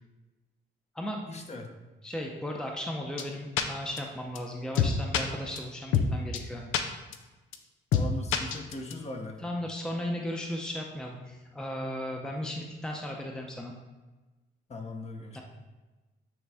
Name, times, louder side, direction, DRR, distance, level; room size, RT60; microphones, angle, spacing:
voice 1, 1.3-1.7 7.9-9.4 14.7-15.4, left 2 dB, 35° left, 3 dB, 0.9 m, -39 dB
voice 2, 2.0-6.7 9.4-13.7 15.3-15.4, left 1 dB, 5° left, 1 dB, 0.6 m, -36 dB
sound 1, 3.2-3.3 3.6-3.7 4.0-4.1 4.3-4.4 4.7-5.2 5.6-5.7 5.9-6.1 6.3-6.4 6.7-6.8 7.1-7.2 7.5-7.6 7.9-8.1 8.3-8.9, left 8 dB, 90° left, 0.5 m, -25 dB
8.6 x 3.3 x 3.5 m, 1.2 s
cardioid pair, 90°, 20 cm